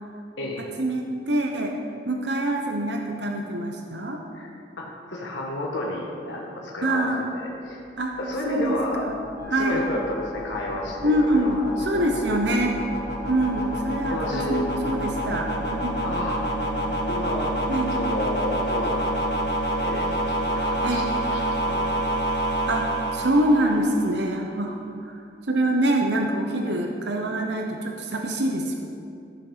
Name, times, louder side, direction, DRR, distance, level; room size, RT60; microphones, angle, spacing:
voice 1, 0.6-1.7 2.1-4.2 6.8-7.2 8.0-8.2 8.4-9.1 9.5-9.8 11.0-12.8 13.3-16.0 17.7-18.0 20.8-21.1 22.7-25.2 25.5-28.8, right 1 dB, 75° right, 2 dB, 1.0 m, -25 dB
voice 2, 4.8-7.8 8.2-12.1 14.1-14.7 16.0-16.4 17.1-17.6 17.9-19.4 19.8-22.3 22.8-23.0, left 1 dB, 85° left, -3 dB, 1.7 m, -31 dB
sound 1, 8.2-24.3, right 1 dB, 65° left, 1.6 m, -28 dB
sound 2, 9.4-17.0, left 9 dB, 25° right, 2.6 m, -41 dB
14.5 x 7.0 x 5.6 m, 2.5 s
head